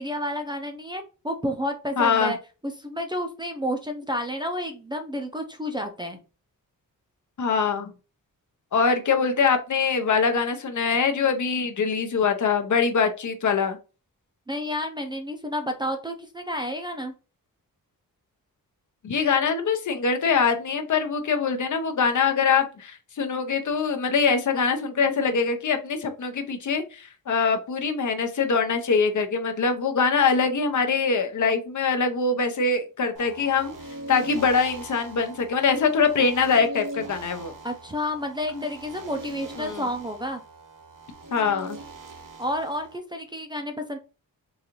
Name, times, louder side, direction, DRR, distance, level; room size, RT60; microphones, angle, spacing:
voice 1, 0.0-2.4 2.6-6.2 14.5-17.1 37.6-40.4 42.4-44.0, equal, 15° right, 5 dB, 0.5 m, -30 dB
voice 2, 2.0-2.3 7.4-7.9 8.7-13.8 19.0-33.7 34.1-37.5 38.5-38.6 39.6-39.8 41.3-41.8, left 5 dB, 55° left, 6 dB, 0.7 m, -23 dB
sound 1, 33.1-43.0, right 2 dB, 65° right, 0.9 m, -41 dB
3.9 x 2.5 x 2.9 m, 0.32 s
wide cardioid pair, 120°, 35 cm